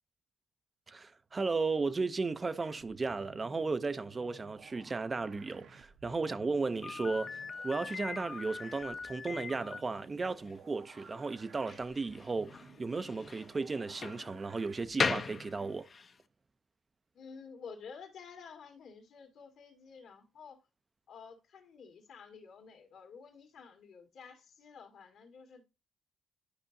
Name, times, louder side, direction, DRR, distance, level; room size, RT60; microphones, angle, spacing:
voice 1, 0.9-15.9, right 4 dB, 30° right, 0.4 m, -35 dB
sound 1, 2.6-15.7, right 5 dB, 70° right, 0.9 m, -56 dB
Slam, 6.8-16.2, left 5 dB, 40° left, 0.6 m, -40 dB
voice 2, 17.1-20.6 21.1-25.6, left 5 dB, 70° left, 2.0 m, -51 dB
11.5 x 4.8 x 2.6 m
cardioid pair, 90°, 0 cm